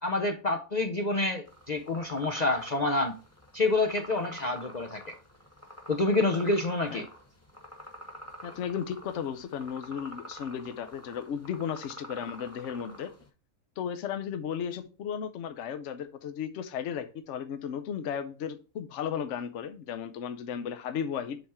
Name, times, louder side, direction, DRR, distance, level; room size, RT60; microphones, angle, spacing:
voice 1, 0.0-3.2 3.5-5.2 5.9-7.1, left 2 dB, 50° left, 0.5 m, -28 dB
sound 1, 1.5-13.3, equal, 10° left, 1.1 m, -47 dB
voice 2, 8.4-13.1 13.8-21.4, left 8 dB, 65° left, 0.9 m, -35 dB
7.9 x 3.6 x 4.2 m
omnidirectional pair, 1.4 m